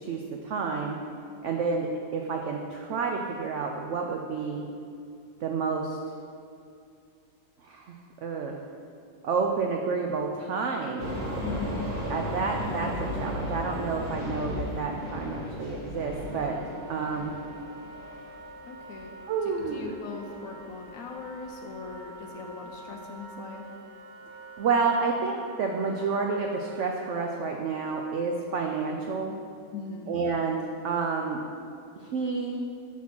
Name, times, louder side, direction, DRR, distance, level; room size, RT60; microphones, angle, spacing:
voice 1, 0.0-1.0 1.4-4.6 5.4-6.0 7.6-8.6 9.2-11.1 12.1-16.6 16.9-17.3 19.3-19.9 24.6-29.4 30.1-31.4 32.0-32.6, right 4 dB, 90° right, 2 dB, 0.6 m, -29 dB
sound 1, 11.0-19.6 20.0-20.4 20.8-20.9 21.4-21.5 21.9-22.0, left 1 dB, 30° right, 1.4 m, -35 dB
voice 2, 11.4-11.9 18.6-19.1 19.4-23.6 29.7-30.1, left 4 dB, 70° left, 1 dB, 0.8 m, -40 dB
Wind instrument woodwind instrument, 16.2-27.4, right 2 dB, 70° right, 1.2 m, -47 dB
6.0 x 4.2 x 5.9 m, 2.5 s
omnidirectional pair, 1.8 m